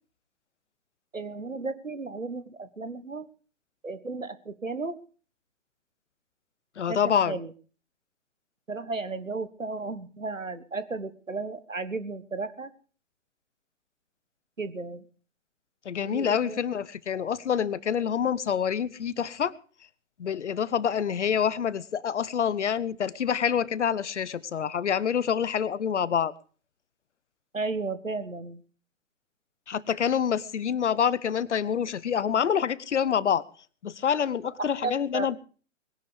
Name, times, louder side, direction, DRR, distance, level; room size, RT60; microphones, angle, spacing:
voice 1, 1.1-3.3 3.8-5.0 6.9-7.5 8.7-12.7 14.6-15.0 16.0-16.6 27.5-28.6 34.6-35.3, right 3 dB, 85° right, 13 dB, 1.6 m, -34 dB
voice 2, 6.8-7.3 15.8-19.6 20.2-26.3 29.7-33.4 33.8-35.4, left 8 dB, 65° left, 20 dB, 1.0 m, -27 dB
21.0 x 11.0 x 5.2 m, 0.40 s
figure-of-eight pair, 120°, 38 cm